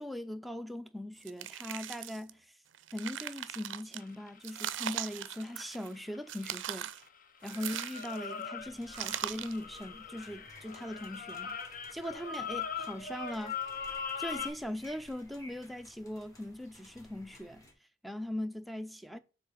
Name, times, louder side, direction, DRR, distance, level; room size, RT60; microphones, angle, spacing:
voice 1, 0.0-2.5 2.9-6.9 7.4-11.6 11.9-13.6 14.2-17.7 18.0-19.2, left 1 dB, ahead, 0.4 m, -40 dB
sound 1, 1.2-2.3 2.7-4.0 4.4-5.9 6.3-7.0 7.5-8.3 8.9-9.6, right 11 dB, 65° right, 0.4 m, -39 dB
sound 2, 4.0-7.1 7.4-14.5, left 6 dB, 45° left, 0.7 m, -41 dB
sound 3, 8.6-17.7, equal, 15° left, 1.5 m, -56 dB
7.2 x 3.1 x 5.0 m
head